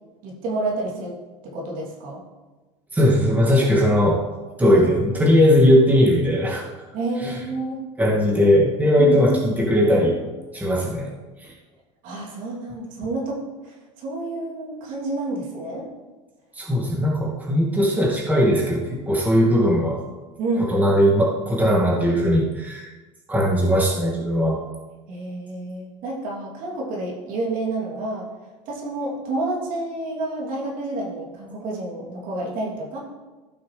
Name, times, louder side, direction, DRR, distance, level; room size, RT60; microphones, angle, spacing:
voice 1, 0.2-1.1 1.4-2.2 6.9-7.8 9.0-9.4 12.0-15.9 20.4-21.0 25.1-28.3 28.7-33.0, right 2 dB, 60° right, -4 dB, 3.2 m, -29 dB
voice 2, 2.9-4.3 4.6-6.7 7.2-7.4 8.0-10.2 10.5-11.1 11.4-11.5 16.5-20.0 20.6-22.9 23.3-24.6, equal, 10° right, -4 dB, 2.3 m, -19 dB
15.0 x 6.0 x 3.4 m, 1.2 s
supercardioid pair, 100°, 15 cm